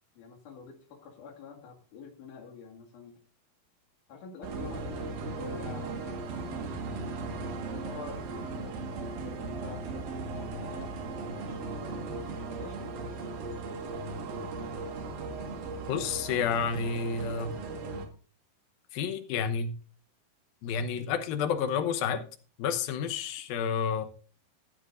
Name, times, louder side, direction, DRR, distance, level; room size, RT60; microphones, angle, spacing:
voice 1, 0.2-3.2 4.1-6.8 7.4-13.4, left 6 dB, 60° left, 0 dB, 3.5 m, -48 dB
sound 1, 4.4-18.1, right 3 dB, 80° right, 3.4 m, -37 dB
voice 2, 15.9-17.5 18.9-19.7 20.6-22.2 22.6-24.0, left 6 dB, 80° left, 9 dB, 2.8 m, -30 dB
14.0 x 12.5 x 2.6 m, 0.38 s
omnidirectional pair, 4.2 m